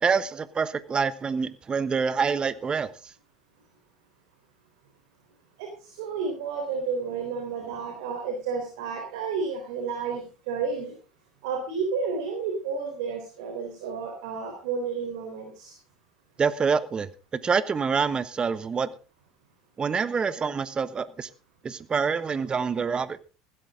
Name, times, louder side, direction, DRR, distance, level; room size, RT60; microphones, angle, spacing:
voice 1, 0.0-2.9 16.4-17.1 17.4-18.9 19.8-21.3 21.6-23.2, right 5 dB, 30° right, 1.1 m, -26 dB
voice 2, 5.6-10.9 11.4-15.8, right 5 dB, 70° right, 3.7 m, -31 dB
16.0 x 13.0 x 3.8 m
hypercardioid pair, 75°, 3 cm